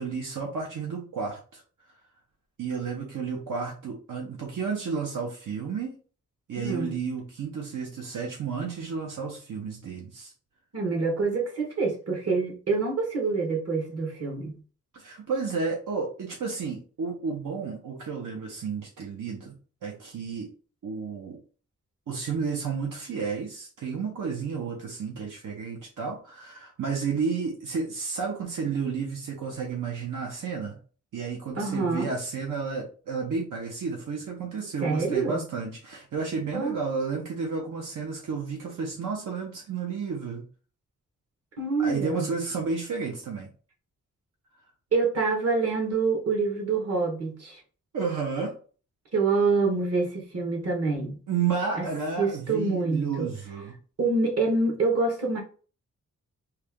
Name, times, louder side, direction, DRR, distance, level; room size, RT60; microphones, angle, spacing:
voice 1, 0.0-1.6 1.9-2.0 2.6-5.9 6.5-10.3 14.9-19.6 19.8-20.5 20.8-21.4 22.1-30.8 31.1-40.4 41.8-43.5 47.9-48.6 51.3-53.7, right 5 dB, 75° right, 0.9 m, -32 dB
voice 2, 6.6-6.9 10.7-14.5 31.6-32.1 34.8-35.4 36.5-36.8 41.6-42.3 44.9-47.6 49.1-51.2 51.8-51.9 52.2-53.3 54.0-55.4, right 4 dB, 50° right, 1.4 m, -26 dB
3.3 x 2.9 x 3.5 m
wide cardioid pair, 130°, 31 cm